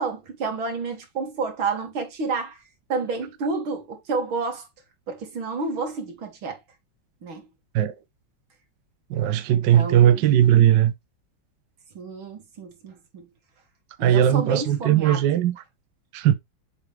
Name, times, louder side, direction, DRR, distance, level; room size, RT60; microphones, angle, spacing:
voice 1, 0.0-2.6 2.9-4.7 5.1-6.6 7.2-7.4 9.5-10.3 11.9-13.3 14.0-15.2, right 4 dB, 90° right, 2.9 m, -30 dB
voice 2, 9.1-10.9 14.0-15.6 16.1-16.3, right 11 dB, 70° right, 1.3 m, -18 dB
7.3 x 5.0 x 3.2 m
omnidirectional pair, 2.2 m